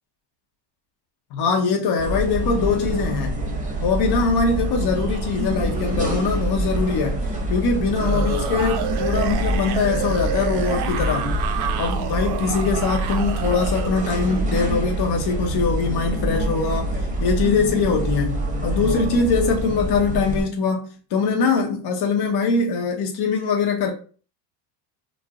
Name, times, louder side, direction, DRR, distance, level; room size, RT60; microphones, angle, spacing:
voice 1, 1.3-3.3 3.8-7.2 7.5-11.3 11.8-16.9 17.2-23.9, left 4 dB, 50° left, 0.8 m, -22 dB
sound 1, 2.0-20.4, right 1 dB, 15° right, 0.8 m, -26 dB
sound 2, 4.7-6.4 7.9-14.5, right 9 dB, 55° right, 0.5 m, -31 dB
2.4 x 2.0 x 3.4 m
supercardioid pair, 90°, 49 cm